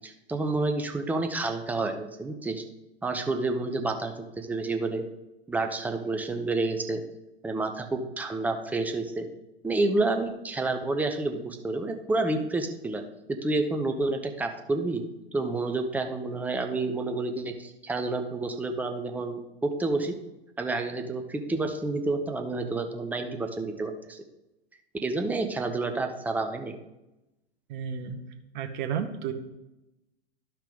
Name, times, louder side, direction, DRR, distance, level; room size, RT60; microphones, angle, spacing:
voice 1, 0.0-2.6 3.0-5.0 5.5-7.0 7.4-9.3 9.6-13.0 13.4-15.0 15.3-20.1 20.6-24.2 25.0-26.8, right 2 dB, 5° right, 5 dB, 0.6 m, -29 dB
voice 2, 27.7-28.2 28.5-29.3, right 8 dB, 45° right, 4 dB, 0.9 m, -32 dB
11.5 x 5.8 x 3.5 m, 0.96 s
figure-of-eight pair, 105°, 33 cm